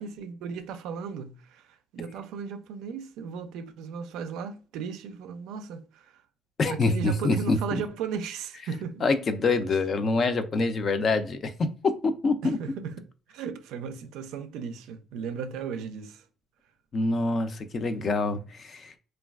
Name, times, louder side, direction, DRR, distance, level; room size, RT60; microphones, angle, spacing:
voice 1, 0.0-6.2 6.7-9.1 12.4-13.0 13.3-16.2, right 6 dB, 90° right, 0.4 m, -36 dB
voice 2, 6.6-7.6 9.0-11.5 11.8-12.6 16.9-18.9, left 3 dB, 35° left, 0.3 m, -25 dB
3.2 x 2.2 x 2.3 m
cardioid pair, 150°, 0 cm